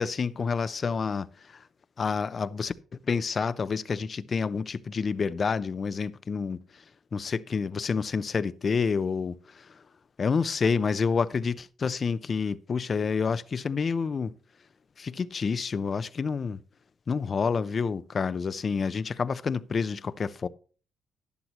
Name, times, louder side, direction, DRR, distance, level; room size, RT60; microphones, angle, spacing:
voice 1, 0.0-1.6 2.0-2.7 3.0-6.8 7.1-9.8 10.2-14.3 15.0-16.6 17.1-20.5, left 5 dB, 40° left, 0.6 m, -28 dB
12.0 x 11.0 x 3.0 m
cardioid pair, 90°, 0 cm